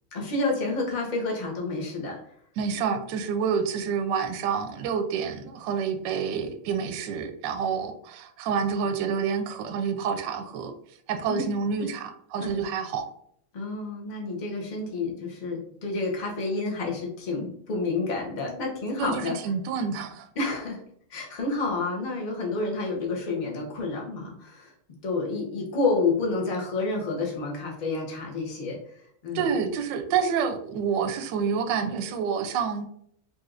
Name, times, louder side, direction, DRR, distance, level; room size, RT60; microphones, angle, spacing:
voice 1, 0.1-2.2 11.3-11.5 11.8-11.9 12.4-12.6 13.5-19.4 20.3-20.8 21.1-24.7 25.0-29.0 29.2-29.5, left 3 dB, 60° left, -1 dB, 0.4 m, -29 dB
voice 2, 2.6-10.7 11.1-13.1 19.0-20.3 29.3-32.9, right 6 dB, 75° right, 7 dB, 1.1 m, -28 dB
5.5 x 2.8 x 2.4 m, 0.67 s
omnidirectional pair, 2.3 m